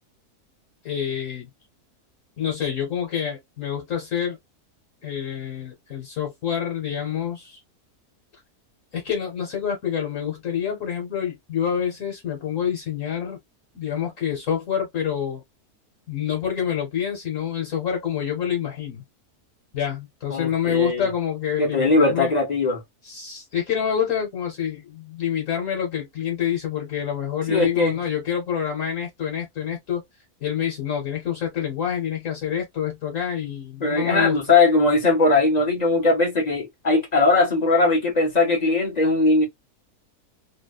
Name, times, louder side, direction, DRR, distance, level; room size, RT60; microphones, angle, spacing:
voice 1, 0.8-1.5 2.4-4.4 5.0-7.6 8.9-13.4 13.7-15.4 16.1-19.0 19.7-22.3 23.0-30.0 30.4-34.4, left 9 dB, 65° left, 1.2 m, -27 dB
voice 2, 20.3-21.1 21.6-22.8 27.5-28.0 33.8-39.5, left 3 dB, 40° left, 0.7 m, -20 dB
2.8 x 2.0 x 2.2 m
omnidirectional pair, 1.6 m